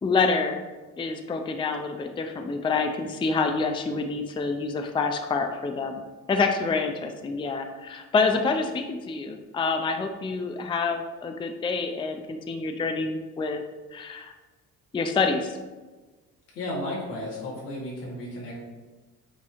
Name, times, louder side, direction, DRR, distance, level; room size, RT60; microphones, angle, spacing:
voice 1, 0.0-0.6 1.0-5.9 6.3-13.6 13.9-14.3 14.9-15.6, left 4 dB, 10° left, 6 dB, 0.5 m, -27 dB
voice 2, 16.5-18.6, left 1 dB, 80° left, -4 dB, 2.1 m, -33 dB
8.6 x 4.2 x 3.6 m, 1.3 s
figure-of-eight pair, 55°, 47 cm